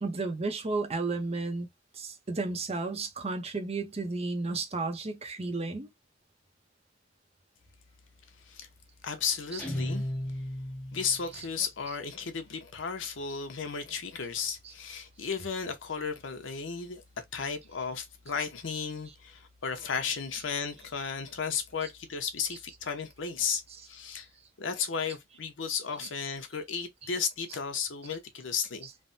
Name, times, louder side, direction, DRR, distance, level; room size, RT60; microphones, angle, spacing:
voice 1, 0.0-1.7 1.9-5.9 9.5-9.6, right 3 dB, 35° right, 0.7 m, -33 dB
voice 2, 9.0-10.1 10.9-17.0 17.3-24.3 24.6-28.9, left 6 dB, 75° left, 0.8 m, -34 dB
Guitar, 9.6-11.3, left 1 dB, 5° left, 0.8 m, -34 dB
3.3 x 2.1 x 2.5 m
head